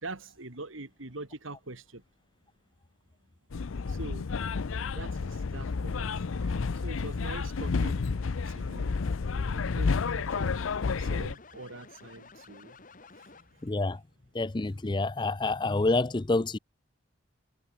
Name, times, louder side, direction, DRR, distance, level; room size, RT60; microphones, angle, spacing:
voice 1, 0.0-2.0 3.9-4.3 5.0-6.1 6.4-8.1 8.5-9.0 9.4-10.5 11.0-12.8, right 2 dB, 85° right, 2.7 m, -43 dB
sound 1, 3.5-11.3, left 4 dB, 90° left, 0.6 m, -30 dB
sound 2, 9.6-13.8, left 4 dB, 40° left, 1.6 m, -53 dB
voice 2, 13.6-14.0 14.3-16.6, left 2 dB, 25° left, 0.5 m, -27 dB
head